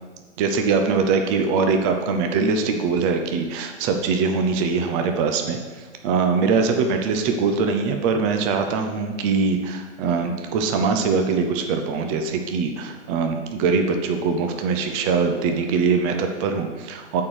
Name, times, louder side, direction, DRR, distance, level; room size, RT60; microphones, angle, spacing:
voice 1, 0.4-5.6 6.0-17.2, right 5 dB, 25° right, 5 dB, 0.7 m, -22 dB
8.5 x 4.5 x 6.5 m, 1.5 s
hypercardioid pair, 125°, 36 cm